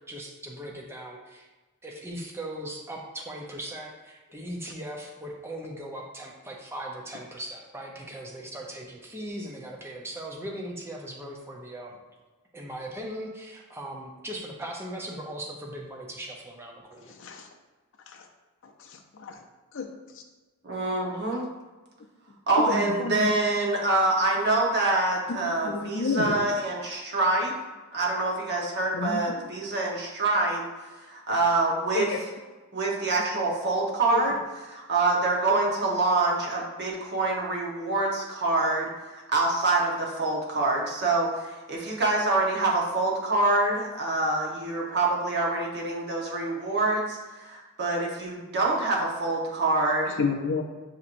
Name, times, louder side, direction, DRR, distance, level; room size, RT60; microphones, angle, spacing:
voice 1, 0.1-1.5 1.8-12.0 12.5-17.1, right 1 dB, 10° right, -1 dB, 0.5 m, -39 dB
voice 2, 18.6-19.4 19.7-19.9 22.6-23.3 25.3-26.4 28.9-29.4 31.9-32.2 34.1-34.3 50.2-50.6, left 4 dB, 60° left, 4 dB, 0.5 m, -30 dB
voice 3, 20.6-21.4 22.5-27.6 27.9-30.6 30.9-32.1 32.7-34.4 34.7-50.2, right 2 dB, 50° right, -2 dB, 0.9 m, -26 dB
6.6 x 2.9 x 2.5 m, 1.2 s
head